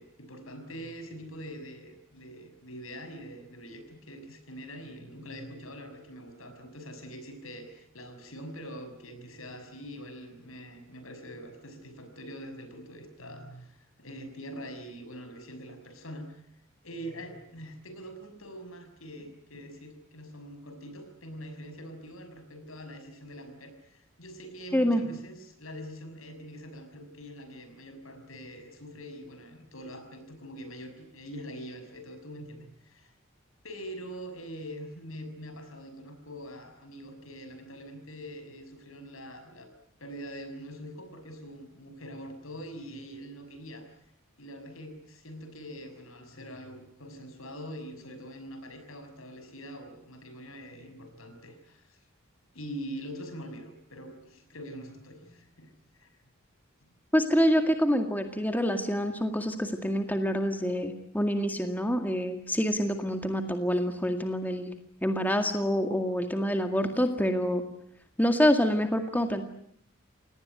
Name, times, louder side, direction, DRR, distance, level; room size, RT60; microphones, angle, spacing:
voice 1, 0.0-16.4 16.8-33.1 33.6-39.7 40.0-43.9 44.4-52.0 52.5-55.7 56.0-56.2 56.8-56.9, equal, 85° left, 8 dB, 6.2 m, -44 dB
voice 2, 57.1-64.7 65.0-67.6 68.2-69.4, equal, 10° left, 6 dB, 2.0 m, -26 dB
27.5 x 19.0 x 9.5 m, 0.70 s
head